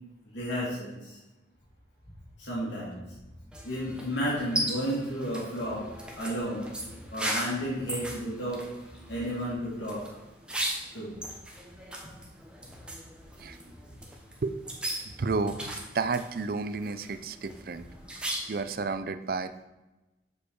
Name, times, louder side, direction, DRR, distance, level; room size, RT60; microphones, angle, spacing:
voice 1, 0.3-1.2 2.4-3.0 3.6-5.8 6.2-6.7 7.1-8.6 9.1-10.0 10.9-11.1, equal, 75° left, -6 dB, 2.3 m, -32 dB
sound 1, 3.5-18.7, right 1 dB, 5° right, 0.8 m, -38 dB
voice 2, 15.2-17.9 18.5-19.6, right 4 dB, 50° right, 10 dB, 0.4 m, -31 dB
6.7 x 5.1 x 4.6 m, 1.1 s
head